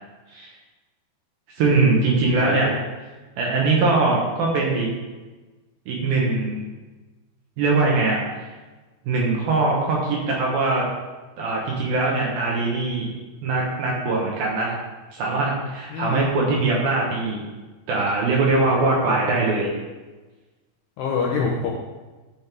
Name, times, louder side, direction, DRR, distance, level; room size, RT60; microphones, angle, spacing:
voice 1, 1.6-2.7 3.4-4.9 5.9-6.6 7.6-8.5 9.1-10.9 11.4-13.1 13.4-14.8 15.1-17.4 17.9-19.7, right 3 dB, 70° right, -3 dB, 2.2 m, -21 dB
voice 2, 2.4-2.9 15.9-16.3 21.0-21.8, left 5 dB, 80° left, -2 dB, 2.4 m, -26 dB
12.0 x 6.4 x 3.5 m, 1.2 s
omnidirectional pair, 5.9 m